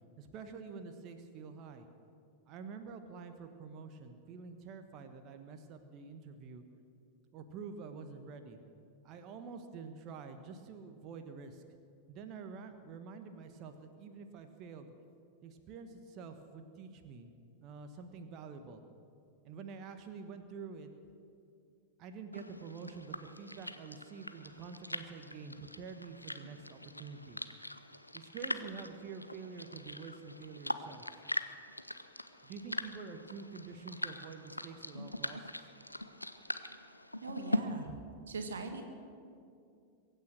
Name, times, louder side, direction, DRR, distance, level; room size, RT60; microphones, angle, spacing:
voice 1, 0.2-1.9 2.5-6.6 7.3-8.6 9.0-11.6 12.1-14.9 15.4-17.3 17.6-18.8 19.4-20.9 22.0-27.4 28.1-31.1 32.4-35.7, right 5 dB, 40° right, 7 dB, 1.2 m, -47 dB
sound 1, 22.3-37.6, left 1 dB, 85° left, 0.6 m, -42 dB
voice 2, 37.2-37.9 38.3-38.9, right 3 dB, 70° right, 6 dB, 1.6 m, -41 dB
22.5 x 9.3 x 6.4 m, 2.4 s
figure-of-eight pair, 90°, 0 cm